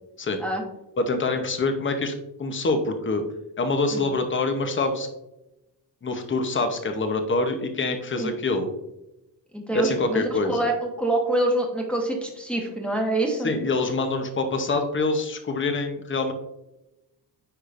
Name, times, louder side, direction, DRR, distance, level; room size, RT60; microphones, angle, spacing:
voice 1, 1.0-2.1 2.4-3.2 3.6-5.1 6.0-8.7 9.7-10.7 13.4-16.3, left 3 dB, 30° left, 6 dB, 0.8 m, -25 dB
voice 2, 9.5-13.5, right 1 dB, 5° left, 0 dB, 1.1 m, -26 dB
9.1 x 5.0 x 2.5 m, 0.93 s
wide cardioid pair, 135°, 42 cm